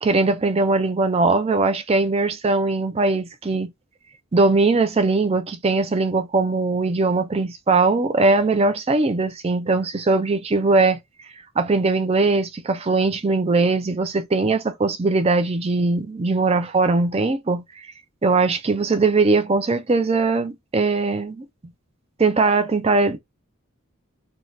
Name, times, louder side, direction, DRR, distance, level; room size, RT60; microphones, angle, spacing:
voice 1, 0.0-3.7 4.3-11.0 11.6-17.9 18.2-21.4 22.2-23.2, right 3 dB, 30° right, 0.5 m, -20 dB
2.7 x 2.4 x 3.1 m
head